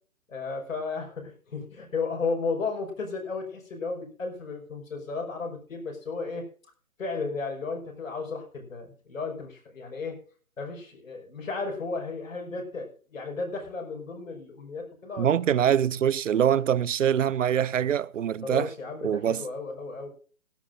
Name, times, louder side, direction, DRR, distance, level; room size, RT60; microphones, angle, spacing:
voice 1, 0.3-6.5 7.0-10.2 10.6-15.7 18.4-20.1, left 4 dB, 65° left, 5.5 m, -34 dB
voice 2, 15.2-18.7 19.0-19.4, right 9 dB, 65° right, 0.7 m, -24 dB
17.0 x 12.5 x 2.6 m
hypercardioid pair, 155°, 42 cm